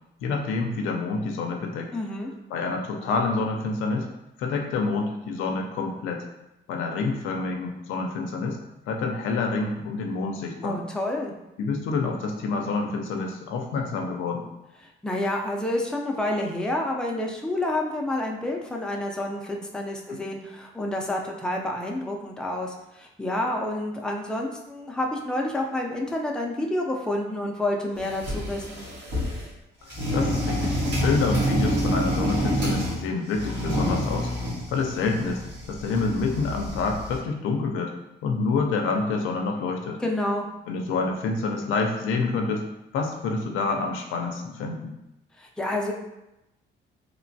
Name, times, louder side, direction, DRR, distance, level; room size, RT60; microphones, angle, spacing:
voice 1, 0.2-1.9 2.5-4.1 4.4-6.3 6.7-8.6 8.9-10.8 11.6-14.5 20.1-20.2 29.8-30.8 31.0-34.3 34.7-37.9 38.2-40.0 40.7-42.6 42.9-44.9, left 4 dB, 90° left, 2 dB, 0.5 m, -27 dB
voice 2, 1.9-2.3 10.6-11.3 14.8-28.8 40.0-40.5 45.4-45.9, left 1 dB, 5° left, 0 dB, 0.4 m, -29 dB
sound 1, 28.0-29.5 29.9-33.0 33.3-37.2, equal, 65° right, 1.3 m, -27 dB
3.0 x 2.1 x 2.6 m, 0.91 s
cardioid pair, 90°, 20 cm